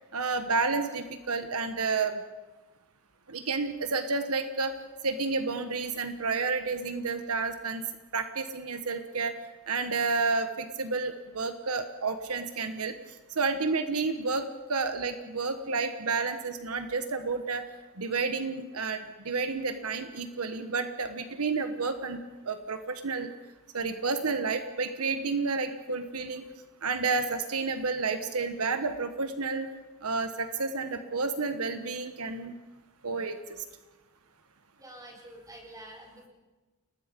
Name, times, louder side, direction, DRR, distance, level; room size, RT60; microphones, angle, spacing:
voice 1, 0.1-2.2 3.3-4.7 5.0-7.8 8.1-9.4 9.7-12.9 13.4-17.6 18.0-23.3 23.7-26.4 26.8-29.7 30.0-32.5 33.0-33.6, right 4 dB, 80° right, 8 dB, 1.3 m, -30 dB
voice 2, 34.8-36.3, right 1 dB, 15° right, 0 dB, 4.6 m, -48 dB
29.5 x 19.5 x 5.3 m, 1.2 s
head